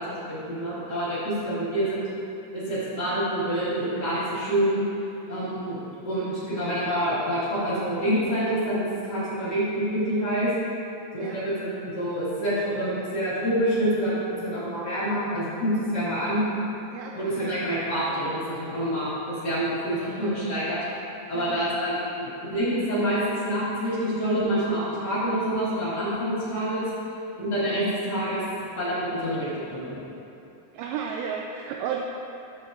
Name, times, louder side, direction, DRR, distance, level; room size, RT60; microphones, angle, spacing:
voice 1, 0.0-2.1 2.5-4.8 5.3-5.8 6.0-10.5 11.1-16.4 17.1-20.8 21.3-26.9 27.4-29.9, right 1 dB, 70° left, -12 dB, 1.0 m, -27 dB
voice 2, 16.9-17.3 21.3-21.6 30.7-32.0, right 7 dB, 85° right, 0 dB, 2.8 m, -33 dB
11.5 x 6.9 x 2.7 m, 2.9 s
omnidirectional pair, 5.6 m